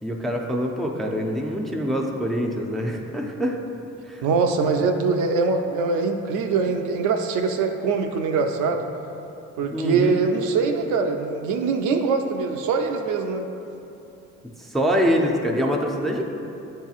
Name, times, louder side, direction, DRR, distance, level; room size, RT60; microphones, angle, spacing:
voice 1, 0.0-3.6 4.1-4.3 9.7-10.2 14.6-16.2, equal, ahead, 0 dB, 0.4 m, -24 dB
voice 2, 4.2-8.8 9.6-13.5, right 4 dB, 80° right, 5 dB, 0.5 m, -23 dB
7.9 x 2.8 x 2.4 m, 2.8 s
cardioid pair, 90°, 30 cm